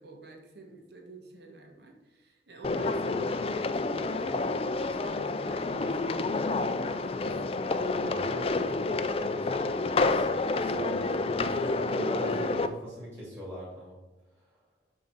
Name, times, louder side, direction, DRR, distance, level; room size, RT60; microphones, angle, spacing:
voice 1, 0.0-4.5 4.8-10.4, right 2 dB, 65° right, 2 dB, 1.5 m, -48 dB
sound 1, 2.6-12.7, left 3 dB, 30° left, 0.4 m, -29 dB
sound 2, 5.0-6.7 7.1-9.8, right 1 dB, 45° right, 0.7 m, -49 dB
voice 2, 9.9-11.0 11.3-14.0, equal, 10° right, -9 dB, 2.8 m, -41 dB
8.0 x 3.8 x 6.7 m, 1.0 s
head